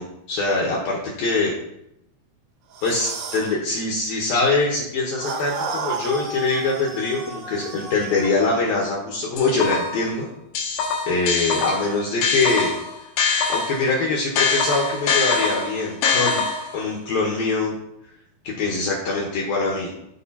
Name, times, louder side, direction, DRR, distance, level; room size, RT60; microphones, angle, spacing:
voice 1, 0.0-1.5 2.8-10.3 11.1-12.7 13.5-16.4 16.7-17.7 18.4-19.9, left 3 dB, 75° left, -2 dB, 2.2 m, -23 dB
sound 1, 2.7-3.5 5.2-8.4, right 4 dB, 70° right, 2.7 m, -32 dB
sound 2, 9.4-10.1 10.6-13.9 14.4-16.8, left 4 dB, 90° left, 3.9 m, -23 dB
13.5 x 4.9 x 2.8 m, 0.81 s
omnidirectional pair, 5.5 m